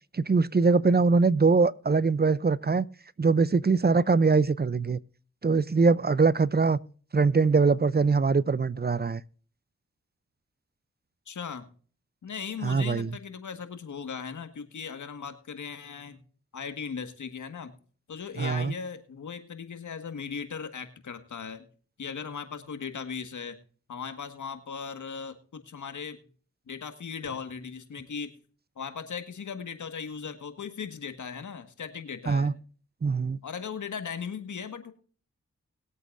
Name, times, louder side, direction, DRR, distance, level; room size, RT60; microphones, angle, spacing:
voice 1, 0.1-2.9 3.2-5.0 5.4-6.8 7.1-9.2 12.6-13.1 18.4-18.7 32.3-32.5 33.0-33.4, right 4 dB, 35° right, 0.7 m, -22 dB
voice 2, 11.3-11.7 12.2-16.2 16.5-17.7 18.1-21.6 22.0-23.6 23.9-26.2 26.7-28.3 28.8-32.6 33.4-34.9, left 6 dB, 85° left, 1.7 m, -38 dB
21.0 x 8.3 x 2.6 m
cardioid pair, 40°, 29 cm